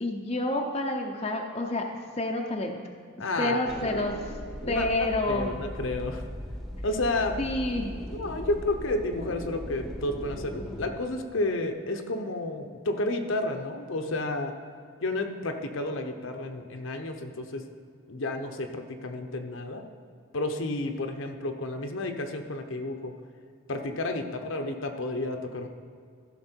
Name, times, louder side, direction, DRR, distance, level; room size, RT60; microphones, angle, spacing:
voice 1, 0.0-1.8 2.2-2.8 3.4-4.1 4.7-5.5 7.4-7.9, left 1 dB, 30° left, 1 dB, 0.6 m, -28 dB
voice 2, 3.2-4.0 4.6-6.2 6.8-7.4 8.1-14.5 15.0-17.7 18.1-19.8 20.3-23.1 23.7-25.7, left 2 dB, 65° left, 5 dB, 0.8 m, -31 dB
sound 1, 3.7-10.9, equal, ahead, 1.0 m, -38 dB
15.0 x 5.9 x 4.5 m, 2.2 s
head